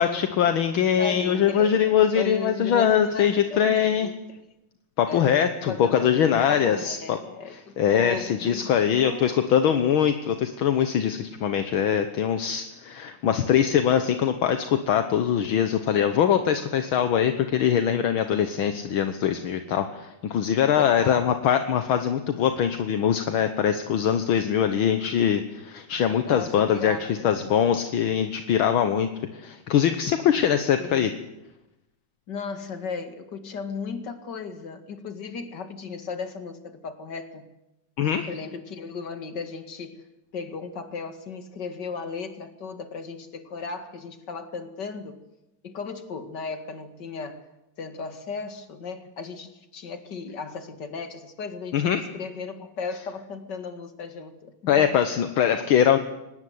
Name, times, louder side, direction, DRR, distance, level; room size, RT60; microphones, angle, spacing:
voice 1, 0.0-4.1 5.0-7.2 7.5-31.1 38.0-38.3 51.7-52.0 54.7-56.0, left 8 dB, 70° left, 8 dB, 1.9 m, -22 dB
voice 2, 1.0-4.4 5.1-9.6 20.8-21.3 26.2-27.6 30.8-31.1 32.3-37.5 38.3-40.0 40.3-45.2 45.6-47.4 47.8-54.9, left 5 dB, 55° left, 8 dB, 2.6 m, -36 dB
24.5 x 18.5 x 9.5 m, 0.93 s
omnidirectional pair, 2.3 m